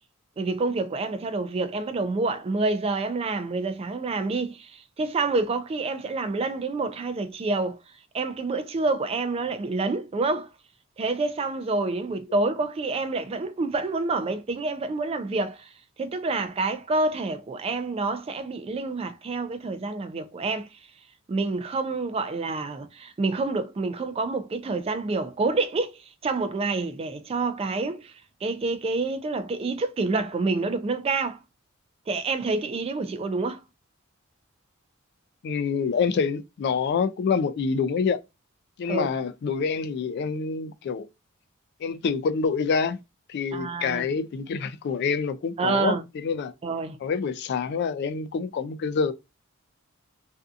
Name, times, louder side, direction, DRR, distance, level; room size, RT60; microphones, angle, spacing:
voice 1, 0.4-7.8 8.1-10.5 11.0-15.7 16.0-20.8 21.3-28.1 28.4-31.4 32.1-33.6 38.9-39.1 43.5-44.1 45.6-46.0 46.6-47.0, right 3 dB, 30° right, 0.3 m, -28 dB
voice 2, 35.4-38.2 38.8-41.1 41.8-43.0 43.3-46.5 47.0-49.1, left 5 dB, 55° left, 0.3 m, -26 dB
2.6 x 2.3 x 2.4 m
head